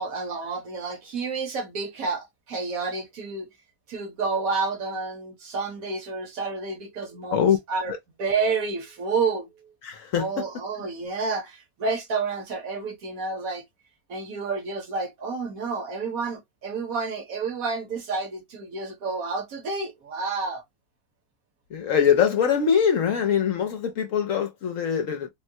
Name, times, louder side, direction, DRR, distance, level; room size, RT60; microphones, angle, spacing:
voice 1, 0.0-3.5 3.9-7.9 8.2-9.5 10.1-13.6 14.1-20.6, right 4 dB, 60° right, 1.3 m, -30 dB
voice 2, 9.8-10.4 21.7-25.3, left 8 dB, 65° left, 0.9 m, -23 dB
3.7 x 2.1 x 2.6 m
omnidirectional pair, 1.7 m